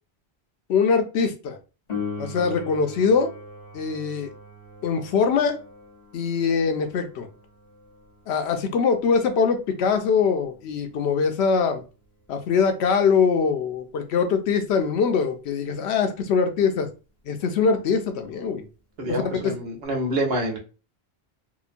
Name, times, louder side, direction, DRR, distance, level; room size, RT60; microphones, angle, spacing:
voice 1, 0.7-1.6 2.2-3.3 3.7-4.3 4.8-5.6 6.1-7.3 8.3-11.8 12.3-16.9 17.3-18.6 19.1-19.6, left 5 dB, 85° left, 0.8 m, -22 dB
Piano, 1.9-12.3 19.8-19.9, left 4 dB, 40° left, 1.0 m, -41 dB
voice 2, 19.0-20.6, right 1 dB, 70° right, 1.0 m, -27 dB
2.9 x 2.1 x 2.5 m
omnidirectional pair, 1.1 m